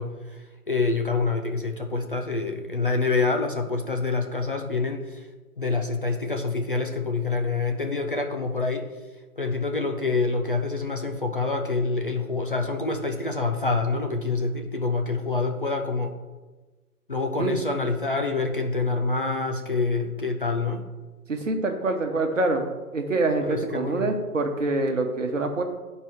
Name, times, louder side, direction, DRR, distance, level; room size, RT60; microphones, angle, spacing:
voice 1, 0.0-5.3 5.6-8.9 9.4-16.2 17.1-20.8 23.4-24.1, left 3 dB, 35° left, 3 dB, 0.5 m, -26 dB
voice 2, 21.3-22.7 22.9-25.6, right 2 dB, 55° right, 4 dB, 1.1 m, -25 dB
11.5 x 4.5 x 3.3 m, 1.2 s
figure-of-eight pair, 140°, 45 cm